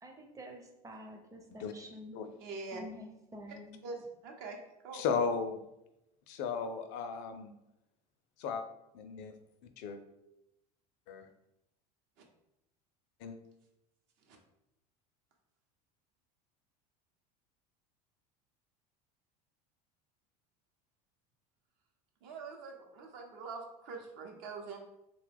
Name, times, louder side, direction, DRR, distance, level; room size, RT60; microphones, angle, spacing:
voice 1, 0.0-2.2 2.7-3.8, equal, 15° right, 4 dB, 0.6 m, -49 dB
voice 2, 2.4-2.8 3.8-4.6 4.8-5.0 12.2-12.3 14.3-14.4 22.2-24.8, right 4 dB, 60° right, 2 dB, 0.7 m, -44 dB
voice 3, 4.9-5.6 6.3-7.5 8.4-8.6 8.9-9.3 9.8-10.0 11.1-11.3 13.2-13.4, left 5 dB, 60° left, 7 dB, 0.4 m, -35 dB
2.8 x 2.2 x 3.4 m, 0.88 s
hypercardioid pair, 85°, 21 cm